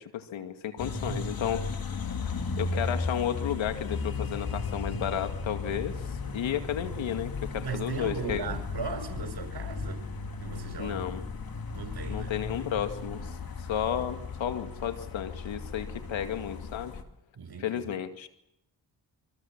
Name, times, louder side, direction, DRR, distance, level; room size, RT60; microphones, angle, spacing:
voice 1, 0.0-1.7 2.6-6.0 6.3-8.5 10.8-11.2 12.1-13.4 13.7-17.0 17.6-18.3, left 9 dB, 80° left, 7 dB, 2.3 m, -32 dB
sound 1, 0.8-17.0, left 4 dB, 50° left, 2.8 m, -35 dB
voice 2, 0.9-1.2 7.6-10.0 10.4-11.2 11.7-12.3 17.3-17.8, right 5 dB, 55° right, 6 dB, 5.2 m, -37 dB
25.5 x 24.5 x 7.4 m, 0.80 s
supercardioid pair, 55°, 45 cm